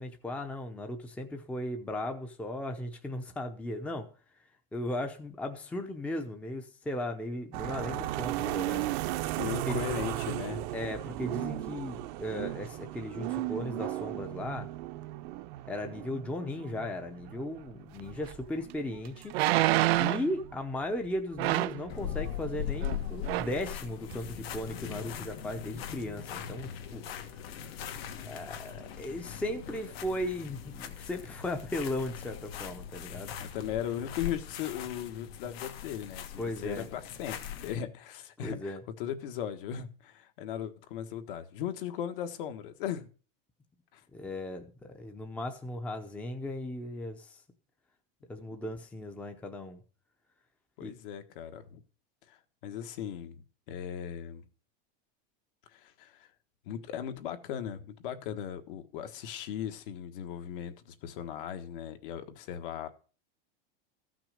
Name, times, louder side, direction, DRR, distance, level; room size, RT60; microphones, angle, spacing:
voice 1, 0.0-4.1 4.7-8.9 9.7-9.9 10.7-14.7 15.7-19.4 20.0-27.0 27.7-27.8 28.2-33.3 36.4-36.9 38.4-38.8 44.1-47.4 48.3-49.8 50.8-50.9, left 1 dB, 5° left, 0.7 m, -36 dB
sound 1, 7.5-23.8, right 15 dB, 50° right, 0.7 m, -37 dB
voice 2, 9.4-10.6 33.4-43.1 43.9-44.0 50.8-51.8 52.3-52.4 52.6-54.4 55.7-56.3 56.7-62.9, left 9 dB, 60° left, 1.5 m, -38 dB
sound 2, 18.3-18.4 19.3-20.3 21.4-21.8 22.8-23.0 23.2-23.6 24.1-24.2, right 18 dB, 80° right, 0.5 m, -27 dB
sound 3, 21.9-37.8, left 9 dB, 75° left, 1.7 m, -40 dB
14.0 x 6.1 x 6.5 m
supercardioid pair, 165°, 31 cm